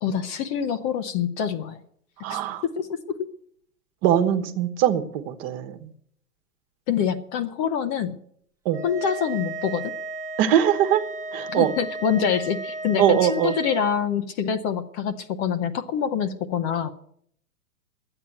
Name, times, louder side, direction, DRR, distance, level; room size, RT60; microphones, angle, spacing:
voice 1, 0.0-1.8 2.3-2.4 2.8-3.3 6.9-8.2 8.8-9.9 11.5-16.9, left 7 dB, 30° left, 9 dB, 0.8 m, -26 dB
voice 2, 2.2-2.6 4.0-5.9 8.6-8.8 10.4-11.0 11.3-11.7 13.0-13.5, right 10 dB, 40° right, 8 dB, 1.4 m, -22 dB
sound 1, 8.7-13.9, right 2 dB, 5° right, 1.2 m, -34 dB
12.0 x 8.9 x 8.3 m, 0.66 s
hypercardioid pair, 125°, 47 cm